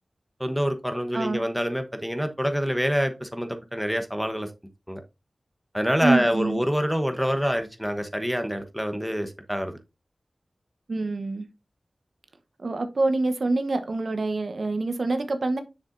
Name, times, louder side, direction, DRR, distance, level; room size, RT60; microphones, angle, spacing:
voice 1, 0.4-4.5 4.9-5.0 5.7-9.8, equal, ahead, 6 dB, 1.0 m, -26 dB
voice 2, 6.0-6.6 10.9-11.5 12.6-15.6, right 2 dB, 65° right, 8 dB, 1.0 m, -26 dB
7.1 x 6.5 x 2.6 m, 0.26 s
wide cardioid pair, 70°, 0 cm